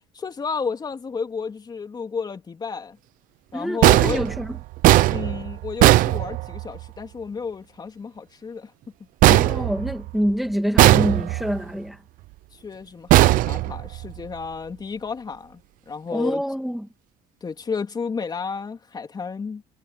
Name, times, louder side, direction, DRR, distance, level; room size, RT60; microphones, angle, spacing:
voice 1, 0.0-3.0 3.5-4.3 5.1-8.7 12.5-15.6 15.9-16.4 17.4-19.6, left 5 dB, 30° left, 3.4 m, -32 dB
voice 2, 3.5-4.6 9.3-12.0 16.1-16.9, equal, ahead, 2.5 m, -26 dB
sound 1, 3.8-6.9 9.2-10.3 10.8-11.6 13.1-14.2, right 17 dB, 70° right, 0.7 m, -18 dB
cardioid pair, 110°, 14 cm